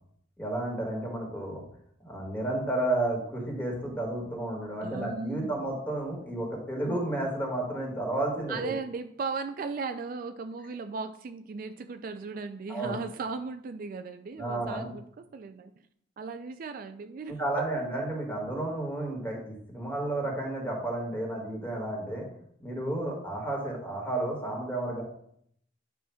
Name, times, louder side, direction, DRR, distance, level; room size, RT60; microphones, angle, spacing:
voice 1, 0.4-1.6 2.0-8.7 12.7-13.0 14.4-14.9 17.3-22.3 22.6-25.0, right 1 dB, 10° left, -1 dB, 1.8 m, -32 dB
voice 2, 4.8-5.7 8.5-15.7 16.2-17.7, right 4 dB, 50° right, 8 dB, 0.3 m, -37 dB
9.3 x 5.8 x 2.3 m, 0.67 s
head